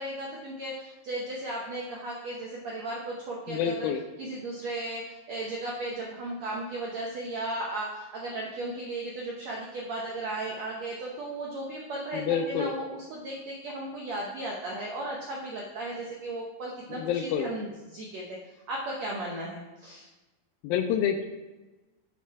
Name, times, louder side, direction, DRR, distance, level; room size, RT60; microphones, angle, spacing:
voice 1, 0.0-3.9 4.2-18.2 18.7-20.1, right 2 dB, 80° right, -2 dB, 1.5 m, -35 dB
voice 2, 3.5-4.0 12.1-12.7 16.9-17.5 20.6-21.3, left 8 dB, 80° left, 6 dB, 2.2 m, -28 dB
7.1 x 6.6 x 4.6 m, 1.1 s
omnidirectional pair, 4.4 m